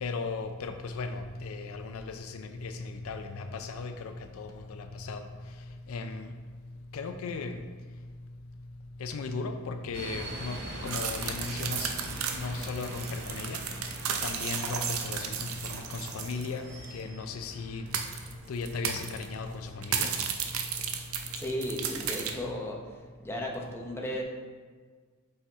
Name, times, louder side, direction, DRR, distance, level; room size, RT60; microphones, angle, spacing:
voice 1, 0.0-5.2 5.9-6.3 6.9-7.6 9.0-10.6 10.8-11.9 12.3-13.6 14.2-16.6 16.9-17.8 18.5-20.1, left 4 dB, 75° left, 7 dB, 0.4 m, -36 dB
sound 1, 9.9-22.5, right 1 dB, 50° right, 1.3 m, -44 dB
sound 2, 10.9-16.5 16.8-16.9 17.9-18.3 18.7-19.3 19.8-22.3, right 7 dB, 80° right, 0.6 m, -34 dB
voice 2, 21.3-22.8 23.2-24.2, left 1 dB, 10° left, -1 dB, 0.7 m, -34 dB
5.6 x 5.4 x 3.5 m, 1.5 s
head